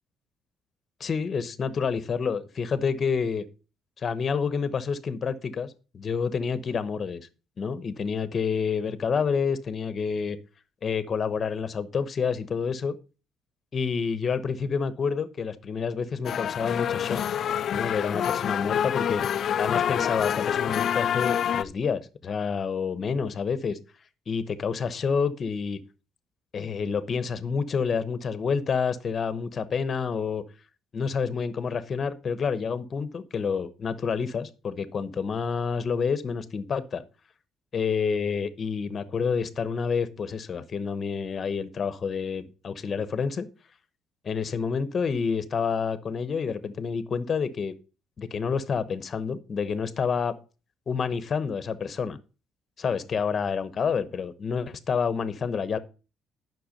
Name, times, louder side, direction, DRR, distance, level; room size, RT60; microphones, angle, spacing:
voice 1, 1.0-3.4 4.0-7.3 7.6-10.4 10.8-13.0 13.7-17.2 17.7-19.2 19.6-23.8 24.3-25.8 26.5-30.4 30.9-37.0 37.7-43.5 44.2-47.7 48.2-50.4 50.9-52.2 52.8-55.8, left 6 dB, 40° left, 13 dB, 1.0 m, -28 dB
sound 1, 16.2-21.6, left 9 dB, 55° left, 0.4 m, -27 dB
10.0 x 6.1 x 5.2 m, 0.33 s
cardioid pair, 125°, 0 cm